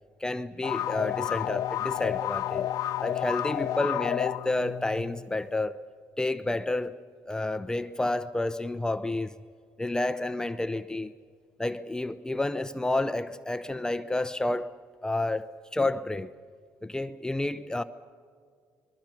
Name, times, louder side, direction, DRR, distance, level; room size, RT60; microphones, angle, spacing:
voice 1, 0.2-2.7 3.0-5.8 6.2-7.0 7.3-9.4 9.8-11.1 11.6-14.7 15.0-16.3 16.8-17.8, left 2 dB, 10° left, 0.7 m, -30 dB
sound 1, 0.6-5.3, left 12 dB, 70° left, 0.6 m, -31 dB
27.5 x 21.5 x 6.0 m
cardioid pair, 95°, 6 cm